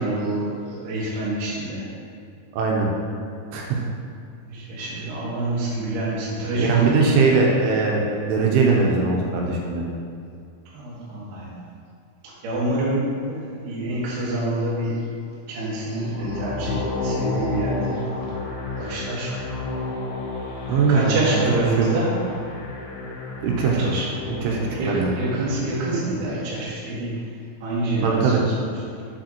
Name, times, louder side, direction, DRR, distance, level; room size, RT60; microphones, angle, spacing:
voice 1, 0.0-1.9 4.5-7.1 10.7-11.5 12.2-15.0 15.5-18.0 18.8-19.3 20.7-22.2 23.6-24.1 24.5-27.1 27.6-28.4, right 2 dB, 65° right, -7 dB, 2.2 m, -27 dB
voice 2, 2.5-2.9 3.5-3.8 6.6-9.9 20.7-21.4 21.8-21.9 23.4-24.0 24.4-24.6 24.9-25.1 28.0-28.4, right 4 dB, 85° right, -1 dB, 3.0 m, -20 dB
sound 1, 15.9-26.0, left 3 dB, 80° left, 2.8 m, -31 dB
6.8 x 5.1 x 2.9 m, 2.4 s
omnidirectional pair, 5.4 m